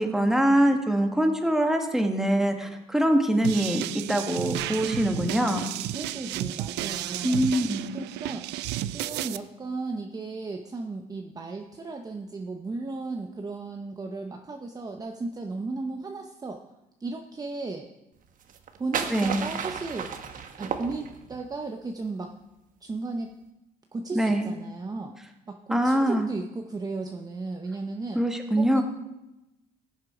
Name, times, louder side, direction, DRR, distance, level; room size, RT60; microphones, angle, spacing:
voice 1, 0.0-5.7 7.2-7.9 19.1-19.4 24.1-24.5 25.7-26.3 28.1-28.8, right 1 dB, 5° right, 4 dB, 1.5 m, -24 dB
sound 1, 3.4-9.4, right 13 dB, 85° right, 0.5 m, -32 dB
voice 2, 5.9-16.6 17.0-17.9 18.8-20.1 20.6-22.3 22.8-23.3 23.9-25.2 25.5-28.2 28.6-28.8, right 3 dB, 20° right, 3 dB, 0.9 m, -35 dB
sound 2, 18.4-21.5, right 7 dB, 55° right, 1.2 m, -33 dB
16.5 x 7.4 x 5.0 m, 0.96 s
cardioid pair, 110°, 17 cm